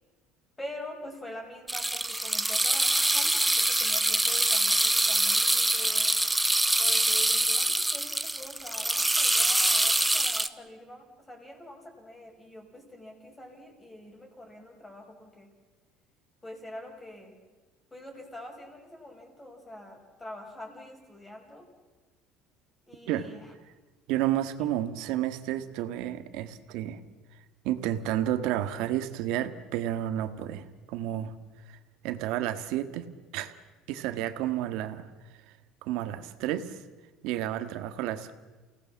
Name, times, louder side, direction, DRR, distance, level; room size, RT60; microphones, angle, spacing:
voice 1, 0.6-6.1 6.8-15.5 16.4-17.4 17.9-21.7 22.9-23.5, left 1 dB, 10° left, 2 dB, 5.5 m, -45 dB
sound 1, 1.7-10.5, right 1 dB, 5° right, 0.9 m, -25 dB
voice 2, 24.1-27.0 27.6-31.3 31.7-31.8 32.0-33.1 33.3-33.5 33.9-35.0 35.8-36.8 37.2-38.3, right 12 dB, 75° right, 10 dB, 1.8 m, -31 dB
29.0 x 18.0 x 7.3 m, 1.3 s
cardioid pair, 140°, 0 cm